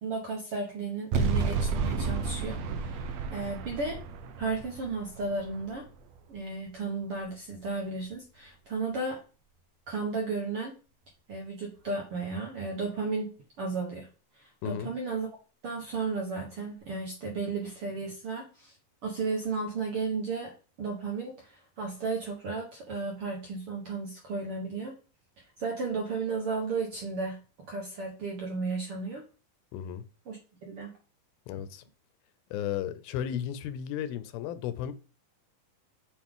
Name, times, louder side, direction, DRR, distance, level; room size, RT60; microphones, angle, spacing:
voice 1, 0.0-3.0 3.3-4.0 4.4-5.8 6.3-9.2 9.9-10.7 11.3-13.3 13.6-14.1 14.3-15.3 15.6-18.7 19.0-20.5 20.8-24.9 25.6-27.4 27.7-29.2 30.3-30.9, right 4 dB, 60° right, 1.5 m, -34 dB
sound 1, 1.1-6.3, right 4 dB, 85° right, 1.5 m, -32 dB
voice 2, 14.6-14.9 29.7-30.0 31.5-31.8 32.5-34.9, left 10 dB, 85° left, 2.5 m, -34 dB
7.2 x 7.0 x 3.7 m
omnidirectional pair, 4.2 m